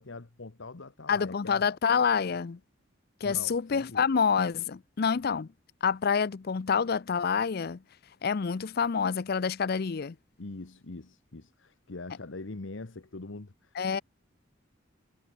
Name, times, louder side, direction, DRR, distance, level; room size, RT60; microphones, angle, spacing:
voice 1, 0.0-1.6 3.2-4.1 10.4-13.8, left 3 dB, 70° left, 1.1 m, -43 dB
voice 2, 1.1-2.6 3.2-5.5 5.8-7.8 8.2-10.2 13.8-14.0, left 6 dB, 50° left, 0.5 m, -27 dB
head